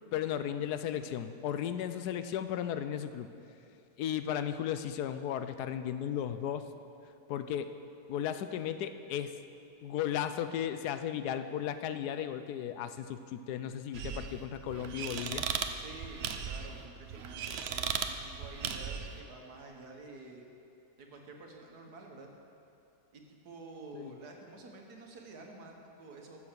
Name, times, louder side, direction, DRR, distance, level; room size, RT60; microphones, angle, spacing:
voice 1, 0.1-3.3 4.0-6.6 7.3-7.7 8.1-9.3 9.8-15.5 23.9-24.2, left 10 dB, 80° left, 10 dB, 1.2 m, -35 dB
sound 1, 13.9-19.2, right 6 dB, 60° right, 0.7 m, -37 dB
voice 2, 15.8-20.4 21.0-22.3 23.1-26.5, right 3 dB, 75° right, 1 dB, 1.9 m, -50 dB
14.0 x 7.0 x 6.7 m, 2.7 s
omnidirectional pair, 1.7 m